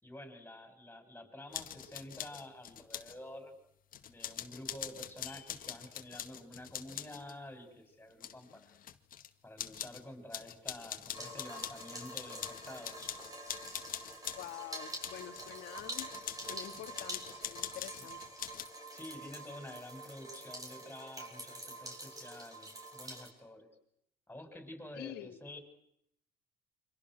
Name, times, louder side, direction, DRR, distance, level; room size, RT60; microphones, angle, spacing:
voice 1, 0.0-3.5 4.1-8.7 9.4-13.1 18.9-23.7 24.3-25.6, left 1 dB, 10° left, 7.2 m, -49 dB
sound 1, 1.5-3.2 3.9-7.3 8.1-9.3 9.6-10.0 10.3-14.5 15.0-18.7, left 10 dB, 55° left, 1.9 m, -44 dB
sound 2, 11.1-23.3, right 1 dB, 20° right, 7.4 m, -46 dB
voice 2, 14.3-16.1 16.4-18.2 24.9-25.4, left 14 dB, 80° left, 2.3 m, -47 dB
29.5 x 26.0 x 6.5 m
cardioid pair, 110°, 17 cm